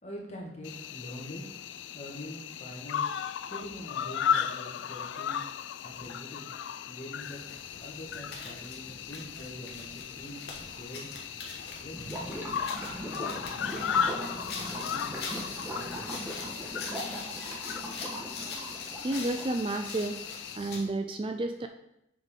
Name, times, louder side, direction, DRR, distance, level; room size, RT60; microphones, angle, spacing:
voice 1, 0.0-1.4 1.9-3.1 3.4-5.4 5.8-6.5 6.9-7.5 7.8-11.1 11.6-12.5 13.0-15.1 15.7-16.1, equal, 35° left, -2 dB, 1.6 m, -44 dB
Cricket, 0.6-20.6, left 8 dB, 85° left, 0.3 m, -36 dB
sound 1, 7.2-20.9, left 3 dB, 60° left, 1.3 m, -43 dB
Gurgling / Liquid, 11.9-19.6, equal, 10° right, 1.3 m, -39 dB
voice 2, 19.0-20.2 20.5-21.7, right 2 dB, 30° right, 6 dB, 0.3 m, -31 dB
7.3 x 5.1 x 3.7 m, 0.81 s
head